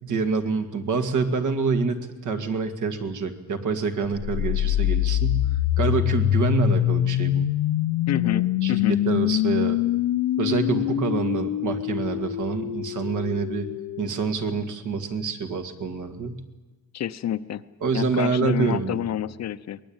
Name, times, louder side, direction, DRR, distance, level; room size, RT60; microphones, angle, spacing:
voice 1, 0.0-5.5 5.8-7.5 8.2-9.8 10.4-13.7 14.0-16.4 17.8-19.0, right 4 dB, 60° right, 6 dB, 2.2 m, -26 dB
sound 1, 4.2-14.1, left 14 dB, 80° left, 0.8 m, -24 dB
voice 2, 8.1-9.0 16.9-17.6 17.9-19.8, left 11 dB, 50° left, 13 dB, 0.7 m, -28 dB
23.0 x 19.5 x 8.9 m, 1.2 s
cardioid pair, 135°, 35 cm